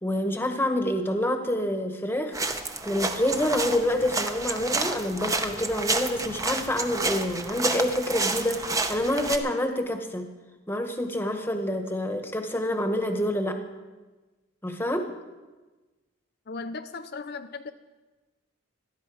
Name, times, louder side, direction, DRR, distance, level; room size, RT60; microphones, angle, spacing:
voice 1, 0.0-2.4 2.8-10.3 10.7-13.6 14.6-15.1, left 1 dB, 10° left, 5 dB, 1.1 m, -27 dB
sound 1, 2.3-9.4, right 3 dB, 15° right, 0.7 m, -30 dB
voice 2, 16.5-17.7, left 4 dB, 50° left, 8 dB, 0.5 m, -37 dB
17.0 x 12.5 x 4.8 m, 1.2 s
head